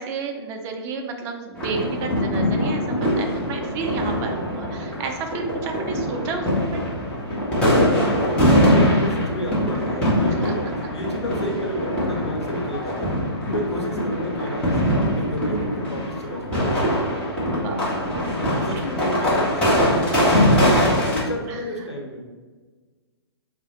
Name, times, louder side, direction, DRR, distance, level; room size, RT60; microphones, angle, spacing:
voice 1, 0.0-6.9 10.4-10.5 14.4-14.5 17.5-18.9 20.1-20.3 21.5-21.6, right 4 dB, 20° right, 3 dB, 0.4 m, -32 dB
sound 1, 1.6-21.2, equal, 10° left, 1.0 m, -22 dB
voice 2, 7.9-10.6 10.9-13.1 13.4-17.3 18.6-20.8 21.0-22.2, equal, 90° left, -1 dB, 0.9 m, -31 dB
4.4 x 2.1 x 2.9 m, 1.4 s
figure-of-eight pair, 120°, 14 cm